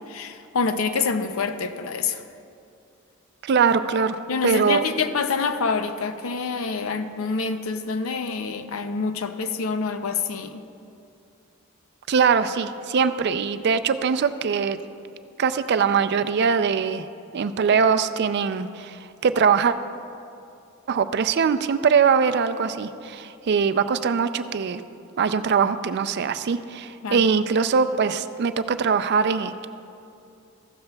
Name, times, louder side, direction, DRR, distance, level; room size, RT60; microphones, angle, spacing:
voice 1, 0.1-2.2 4.3-10.6 27.0-27.3, left 4 dB, 75° left, 9 dB, 0.5 m, -26 dB
voice 2, 3.4-4.2 4.4-4.9 12.1-14.8 15.4-17.1 17.3-19.7 20.9-24.8 25.2-29.7, right 6 dB, 50° right, 11 dB, 0.4 m, -22 dB
15.0 x 12.0 x 2.3 m, 2.6 s
head